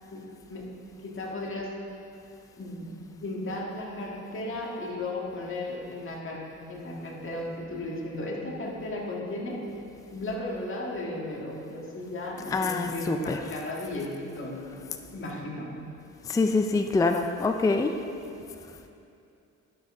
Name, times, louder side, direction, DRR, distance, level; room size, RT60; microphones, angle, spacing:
voice 1, 0.1-0.7 1.0-1.8 2.6-2.9 3.2-6.4 6.7-9.6 10.1-14.7 15.1-15.7, left 1 dB, 45° left, -3 dB, 1.9 m, -35 dB
voice 2, 12.4-13.6 16.3-17.9, left 3 dB, 10° left, 6 dB, 0.4 m, -25 dB
11.5 x 6.4 x 3.7 m, 2.6 s
cardioid pair, 90°, 30 cm